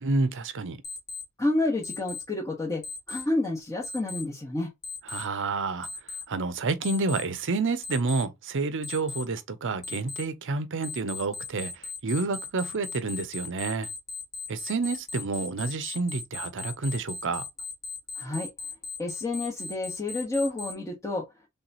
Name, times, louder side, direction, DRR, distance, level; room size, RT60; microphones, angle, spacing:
voice 1, 0.0-0.8 5.1-5.9 6.3-13.9 14.5-17.4, right 3 dB, 60° right, 0.7 m, -29 dB
Alarm, 0.8-1.2 1.8-2.2 2.8-3.2 3.8-4.2 4.8-5.2 5.8-6.2 6.8-7.2 7.8-8.2 8.8-9.2 9.8-10.2 10.8-20.7, left 4 dB, 50° left, 1.5 m, -37 dB
voice 2, 1.4-2.8 3.1-4.7 18.2-18.5 19.0-21.2, left 2 dB, 15° left, 1.1 m, -29 dB
3.4 x 3.0 x 4.0 m
head